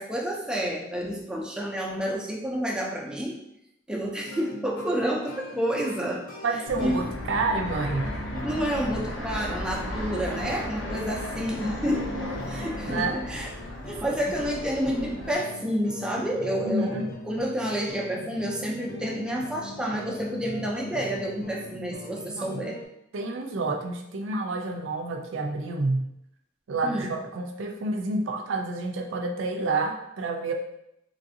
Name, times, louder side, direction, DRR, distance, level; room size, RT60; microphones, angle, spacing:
voice 1, 0.0-3.4 3.9-6.2 6.8-7.0 8.3-12.0 12.5-13.5 13.8-17.0 17.3-22.8 26.8-27.1, equal, 5° right, -2 dB, 0.4 m, -29 dB
sound 1, 4.1-22.8, left 1 dB, 50° left, 0.6 m, -41 dB
voice 2, 6.4-8.2 11.9-13.2 16.6-17.1 22.4-22.6 23.1-26.1 26.7-30.5, right 2 dB, 90° right, 3 dB, 0.4 m, -29 dB
Fixed-wing aircraft airplane, 6.7-15.3, left 1 dB, 85° left, 0.7 m, -35 dB
3.2 x 2.6 x 2.6 m, 0.81 s
head